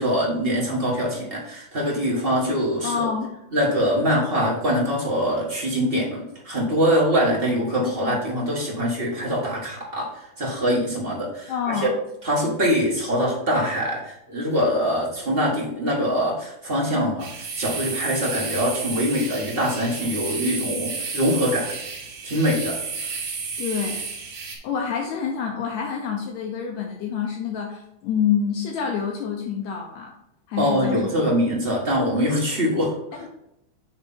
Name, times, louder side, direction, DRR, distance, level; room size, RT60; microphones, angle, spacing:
voice 1, 0.0-3.1 3.5-11.9 12.2-21.7 22.2-23.1 30.6-32.9, equal, 30° right, -4 dB, 1.0 m, -23 dB
voice 2, 2.8-3.3 7.8-8.2 11.5-11.9 23.6-24.0 24.6-30.1 30.5-31.3, left 7 dB, 75° left, 1 dB, 2.0 m, -27 dB
sound 1, 17.2-24.6, right 4 dB, 75° right, 3.0 m, -32 dB
8.0 x 3.2 x 5.5 m, 0.84 s
omnidirectional pair, 3.3 m